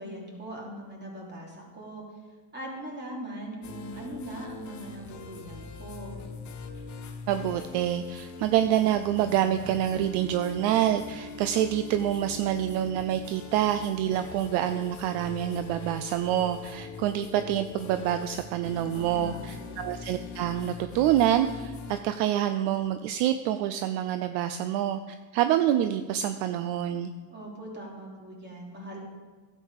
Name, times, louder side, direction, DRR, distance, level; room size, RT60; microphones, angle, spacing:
voice 1, 0.0-2.0 2.5-6.2 18.9-19.8 27.3-29.0, right 1 dB, 20° right, -2 dB, 3.1 m, -41 dB
sound 1, 3.6-22.0, left 4 dB, 40° left, 1.2 m, -42 dB
voice 2, 7.3-25.0 25.3-27.1, right 11 dB, 60° right, 10 dB, 0.6 m, -27 dB
11.5 x 7.6 x 4.9 m, 1.4 s
supercardioid pair, 110°, 45 cm